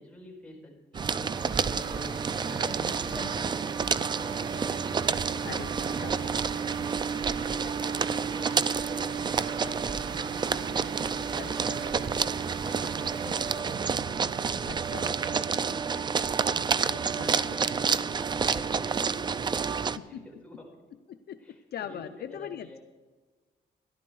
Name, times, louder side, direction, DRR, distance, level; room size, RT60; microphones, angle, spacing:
voice 1, 0.0-6.7 7.3-14.3 14.6-20.7 21.4-22.0 22.3-22.8, left 1 dB, 5° left, -3 dB, 4.6 m, -47 dB
sound 1, 0.9-20.0, right 6 dB, 25° right, 0.4 m, -29 dB
sound 2, 1.3-13.6, right 6 dB, 90° right, 1.3 m, -43 dB
voice 2, 2.8-3.3 5.4-5.7 6.0-6.3 11.4-11.8 13.2-13.3 14.7-15.2 16.9-17.7 19.9-20.2 21.1-21.4 21.7-22.8, left 9 dB, 65° left, 9 dB, 0.6 m, -41 dB
14.0 x 11.5 x 4.7 m, 1.3 s
cardioid pair, 145°, 18 cm